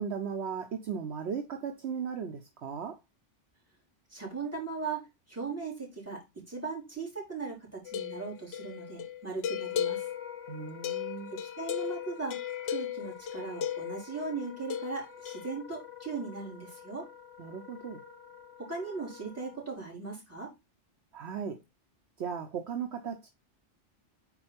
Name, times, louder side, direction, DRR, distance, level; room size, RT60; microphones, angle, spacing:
voice 1, 0.0-3.0 10.5-11.3 17.4-18.0 21.1-21.6 22.2-23.3, right 7 dB, 65° right, 1.0 m, -36 dB
voice 2, 4.1-5.0 5.3-6.2 6.5-10.0 11.3-12.4 12.6-17.1 18.6-20.5, right 4 dB, 10° right, 3.3 m, -38 dB
sound 1, 7.9-14.1 14.7-15.5, left 10 dB, 65° left, 0.8 m, -36 dB
Wind instrument woodwind instrument, 9.6-19.7, left 8 dB, 10° left, 1.6 m, -49 dB
4.4 x 4.3 x 5.6 m
omnidirectional pair, 1.2 m